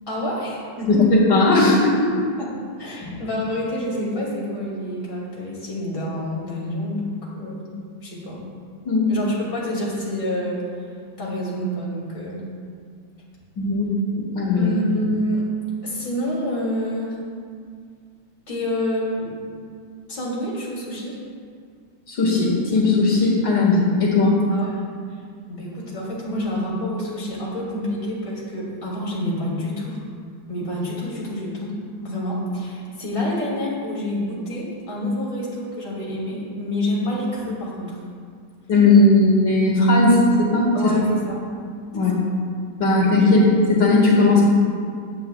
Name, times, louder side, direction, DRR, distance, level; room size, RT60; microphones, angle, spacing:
voice 1, 0.1-0.9 2.4-2.5 2.8-7.7 8.0-8.4 9.1-10.6 11.2-12.4 14.6-15.4 15.8-17.2 18.5-19.4 20.1-21.1 24.5-24.7 25.5-30.0 30.5-31.7 32.0-38.0 40.7-41.5 42.1-42.3, left 1 dB, 30° left, -6 dB, 2.6 m, -28 dB
voice 2, 0.9-2.1 3.0-3.1 8.9-9.1 13.6-14.7 22.1-24.4 38.7-40.9 41.9-42.1 42.8-44.5, left 2 dB, 65° left, -5 dB, 2.5 m, -17 dB
16.0 x 9.5 x 2.3 m, 2.1 s
omnidirectional pair, 2.1 m